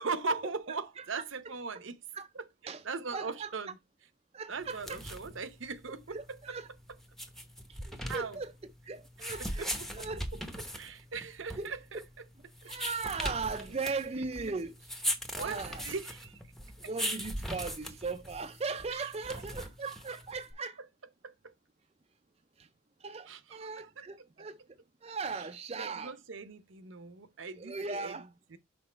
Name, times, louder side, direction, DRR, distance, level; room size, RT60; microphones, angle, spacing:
voice 1, 0.0-2.0 2.3-3.8 4.5-6.6 8.0-8.4 9.4-10.1 10.8-12.0 12.6-12.7 13.7-14.6 15.3-16.4 18.7-19.1 21.2-21.5 23.3-23.7 24.0-24.3 25.3-25.5 25.8-28.6, right 4 dB, 70° right, 0.8 m, -40 dB
voice 2, 3.1-3.5 4.3-5.0 6.1-6.7 7.7-8.5 8.9-10.2 11.6-11.7 12.6-14.7 15.3-15.8 16.9-20.8 22.6-22.7 23.0-24.6 25.0-26.1 27.6-28.3, right 4 dB, 30° right, 0.4 m, -38 dB
sound 1, 4.6-20.5, equal, ahead, 0.8 m, -40 dB
6.2 x 4.0 x 4.5 m
head